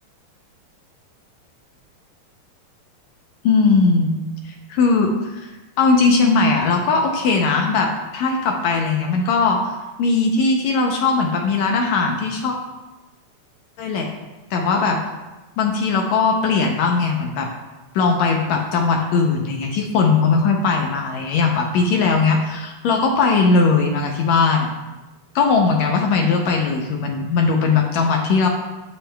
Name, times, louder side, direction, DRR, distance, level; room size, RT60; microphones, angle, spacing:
voice 1, 3.4-4.1 4.7-5.4 5.8-9.7 10.0-12.5 13.8-14.1 14.5-15.0 15.6-17.5 17.9-24.7 25.3-28.5, left 4 dB, 80° left, 2 dB, 1.6 m, -19 dB
9.8 x 7.2 x 2.2 m, 1.1 s
omnidirectional pair, 3.9 m